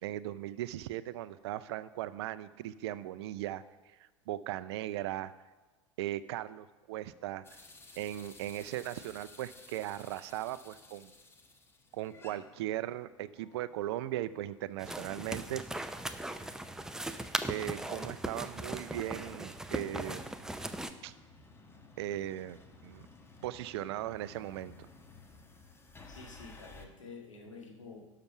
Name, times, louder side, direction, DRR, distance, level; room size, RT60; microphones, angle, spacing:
voice 1, 0.0-3.6 4.0-5.3 6.0-7.6 8.0-11.1 11.9-15.6 17.0-20.3 21.0-21.1 22.0-23.1 23.4-24.7, right 13 dB, 55° right, 15 dB, 0.5 m, -38 dB
sound 1, 7.4-26.9, left 3 dB, 15° left, 1.2 m, -57 dB
sound 2, 14.8-20.9, right 1 dB, 5° right, 0.6 m, -39 dB
voice 2, 26.1-28.1, left 4 dB, 80° left, 1 dB, 1.9 m, -49 dB
12.0 x 5.9 x 5.8 m, 1.2 s
figure-of-eight pair, 85°, 16 cm